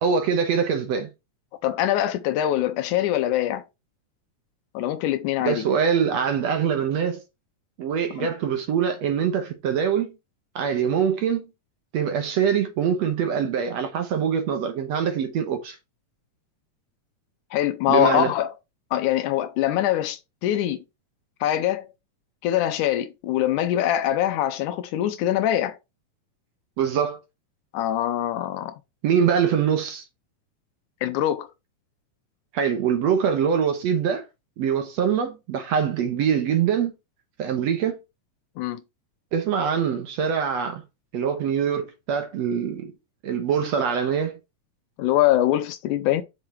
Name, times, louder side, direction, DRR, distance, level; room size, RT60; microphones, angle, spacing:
voice 1, 0.0-1.1 5.4-7.2 7.8-10.1 10.6-11.5 11.9-15.8 17.9-18.3 26.8-27.2 29.0-30.0 32.5-34.3 34.6-36.9 37.4-38.0 39.3-40.8 41.1-42.9 43.2-44.4, right 7 dB, 60° right, 2.0 m, -23 dB
voice 2, 1.6-3.6 4.7-5.6 8.2-8.3 17.5-18.5 18.9-20.8 21.4-21.9 22.4-25.8 27.7-28.8 31.0-31.5 38.6-38.8 45.0-46.2, left 12 dB, 80° left, 2.0 m, -23 dB
6.2 x 5.8 x 4.3 m
omnidirectional pair, 3.8 m